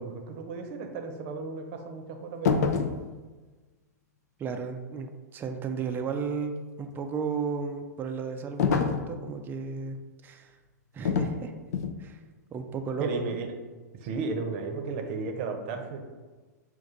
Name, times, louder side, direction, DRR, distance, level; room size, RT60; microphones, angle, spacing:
voice 1, 0.0-2.8 13.0-13.5 14.0-16.0, right 4 dB, 45° right, 5 dB, 0.8 m, -34 dB
sound 1, 2.4-3.0 8.6-9.1 11.0-11.4 11.7-12.0, left 6 dB, 65° left, 0.5 m, -25 dB
voice 2, 4.4-6.5 6.8-10.5 10.9-11.5 12.0-12.2 12.5-13.4, right 5 dB, 20° right, 6 dB, 0.4 m, -34 dB
5.5 x 2.5 x 3.8 m, 1.3 s
hypercardioid pair, 115°, 9 cm